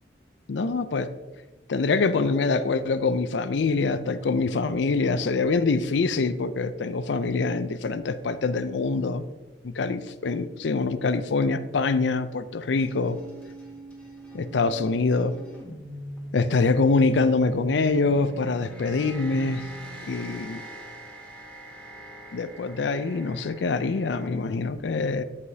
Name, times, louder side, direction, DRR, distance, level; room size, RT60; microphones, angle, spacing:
voice 1, 0.5-1.1 1.7-9.2 9.6-13.2 14.3-15.3 16.3-19.7 20.1-20.6 22.3-25.2, left 4 dB, 80° left, 14 dB, 0.5 m, -25 dB
sound 1, 12.8-24.4, right 1 dB, 5° left, 1.7 m, -42 dB
13.5 x 4.9 x 2.8 m, 1.2 s
head